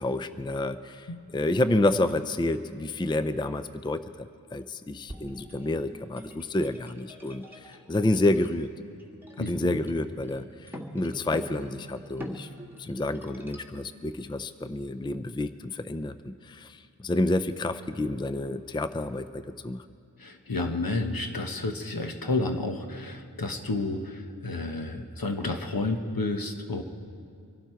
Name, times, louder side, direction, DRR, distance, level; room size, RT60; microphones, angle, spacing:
voice 1, 0.0-1.1 1.3-8.7 9.4-12.5 12.8-19.9, left 2 dB, 15° left, 12 dB, 0.4 m, -29 dB
sound 1, 5.1-13.8, equal, 5° right, 1.7 m, -45 dB
voice 2, 9.4-9.8 20.2-26.8, left 2 dB, 65° left, 5 dB, 1.2 m, -31 dB
24.5 x 11.5 x 4.6 m, 2.3 s
wide cardioid pair, 45°, 37 cm